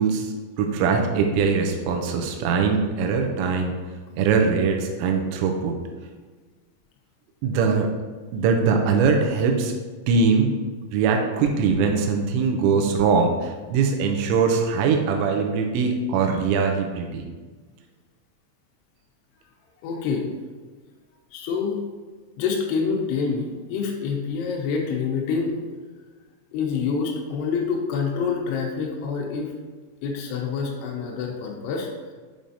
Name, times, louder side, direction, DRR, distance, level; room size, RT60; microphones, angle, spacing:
voice 1, 0.0-3.7 4.2-5.8 7.4-7.9 8.3-9.7 10.1-10.5 10.9-17.2, right 5 dB, 80° right, 2 dB, 2.9 m, -22 dB
voice 2, 19.8-20.3 21.3-21.8 22.4-25.6 26.5-29.5 30.0-32.1, left 5 dB, 85° left, 0 dB, 2.5 m, -27 dB
7.5 x 5.0 x 2.7 m, 1.4 s
omnidirectional pair, 5.5 m